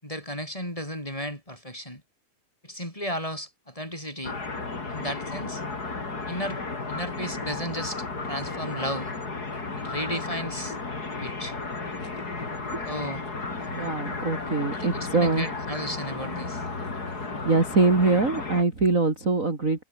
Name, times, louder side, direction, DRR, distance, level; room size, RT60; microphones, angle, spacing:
voice 1, 0.0-2.0 2.6-4.4 4.9-5.6 6.3-6.6 6.9-9.1 9.8-10.8 11.2-11.6 12.8-13.2 14.7-16.6, equal, 10° left, 6.8 m, -34 dB
sound 1, 4.2-18.6, left 3 dB, 30° left, 4.0 m, -34 dB
voice 2, 13.7-15.5 17.4-19.8, right 3 dB, 25° right, 3.7 m, -23 dB
omnidirectional pair, 3.6 m